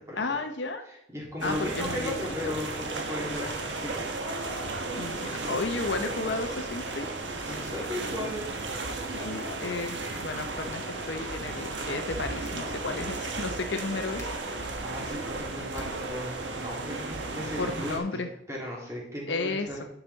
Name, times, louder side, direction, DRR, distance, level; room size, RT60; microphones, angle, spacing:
voice 1, 0.2-0.8 1.4-2.1 2.4-2.5 5.0-7.1 9.1-14.2 17.6-18.3 19.3-19.8, left 3 dB, 70° left, 6 dB, 0.8 m, -33 dB
voice 2, 0.9-3.9 7.4-8.5 14.8-19.8, left 1 dB, 15° right, -4 dB, 2.7 m, -36 dB
sound 1, 1.4-18.0, right 2 dB, 75° right, 1.2 m, -34 dB
sound 2, 12.3-16.7, left 1 dB, 15° left, 1.3 m, -54 dB
10.0 x 6.0 x 4.0 m, 0.78 s
head